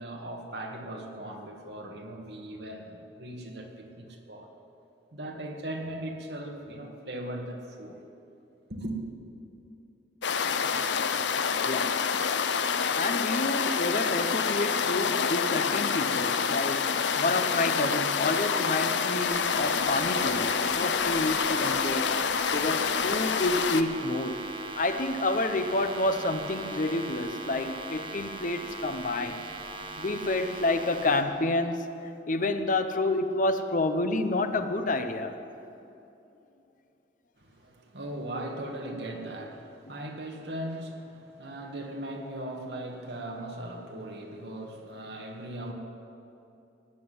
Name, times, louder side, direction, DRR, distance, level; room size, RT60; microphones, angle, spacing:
voice 1, 0.0-4.5 5.1-8.0 8.7-9.0 37.4-45.7, right 1 dB, 65° right, 1 dB, 2.0 m, -38 dB
sound 1, 10.2-23.8, left 6 dB, 80° left, 0.7 m, -27 dB
voice 2, 11.6-12.0 13.0-22.1 22.5-24.4 24.8-29.4 30.0-31.8 32.3-35.3, left 2 dB, 45° left, 9 dB, 0.9 m, -29 dB
sound 2, 19.3-31.2, right 3 dB, 30° right, 1.3 m, -40 dB
sound 3, 25.5-31.5, left 1 dB, 65° left, 4.3 m, -54 dB
18.0 x 7.6 x 9.5 m, 2.8 s
head